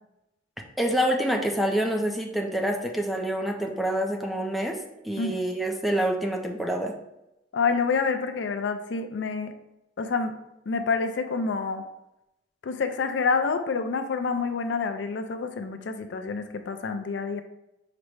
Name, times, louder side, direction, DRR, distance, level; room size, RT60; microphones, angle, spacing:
voice 1, 0.8-4.8 5.0-7.0, right 1 dB, ahead, 0 dB, 0.4 m, -27 dB
voice 2, 7.5-9.5 10.0-10.4 10.7-11.8 12.6-17.4, left 4 dB, 70° left, 7 dB, 0.4 m, -27 dB
5.0 x 2.1 x 4.5 m, 0.89 s
head